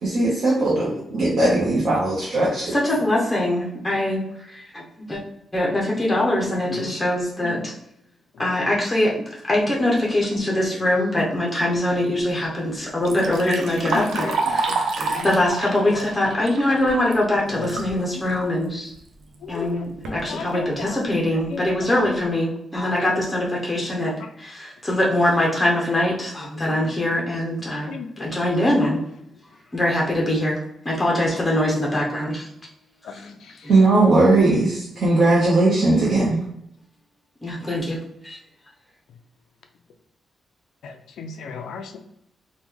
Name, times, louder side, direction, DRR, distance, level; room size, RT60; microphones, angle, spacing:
voice 1, 0.0-2.7 33.7-36.4, right 2 dB, 55° right, -7 dB, 0.8 m, -18 dB
voice 2, 2.7-5.2 5.5-7.7 8.4-9.1 9.5-18.9 19.5-29.0 29.7-30.6 30.8-32.4 37.4-38.0 38.2-38.4, left 1 dB, 10° left, -3 dB, 0.5 m, -23 dB
Liquid, 12.8-17.9 18.3-18.4 19.3-19.4 19.8-20.2 20.8-20.9 21.4-21.5 21.9-22.2, right 4 dB, 85° right, 0.5 m, -28 dB
voice 3, 41.2-42.0, left 5 dB, 75° left, 6 dB, 0.3 m, -34 dB
3.0 x 2.1 x 3.5 m, 0.76 s
wide cardioid pair, 170°, 0 cm